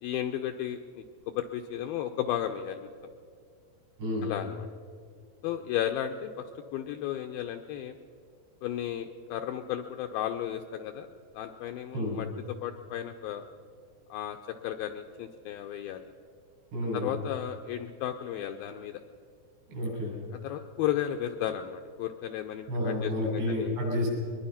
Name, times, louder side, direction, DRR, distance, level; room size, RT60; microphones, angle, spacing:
voice 1, 0.0-2.9 4.2-4.7 5.4-6.3 6.7-8.0 8.6-11.1 11.3-12.3 12.6-13.4 14.1-14.4 14.6-16.0 16.9-19.0 20.4-23.7, left 11 dB, 85° left, 6 dB, 2.1 m, -34 dB
voice 2, 4.0-4.3 11.9-12.2 16.7-17.1 19.7-20.2 22.7-24.1, left 1 dB, 75° right, -2 dB, 8.8 m, -30 dB
22.5 x 21.0 x 5.8 m, 2.2 s
omnidirectional pair, 5.0 m